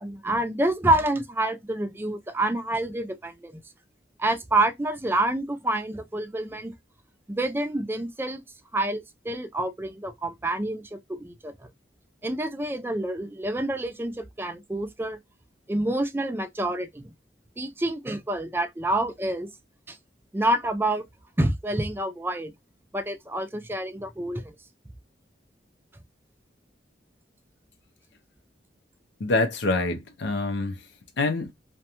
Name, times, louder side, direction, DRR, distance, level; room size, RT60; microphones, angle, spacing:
voice 1, 0.0-3.6 4.2-6.7 7.3-8.4 8.7-11.7 12.2-15.2 15.7-17.1 17.6-19.5 19.9-20.0 20.3-21.0 21.4-22.5 22.9-24.5, right 1 dB, 15° right, 0.4 m, -27 dB
voice 2, 29.2-30.9 31.2-31.5, left 3 dB, 85° left, 0.5 m, -26 dB
2.5 x 2.2 x 2.8 m
head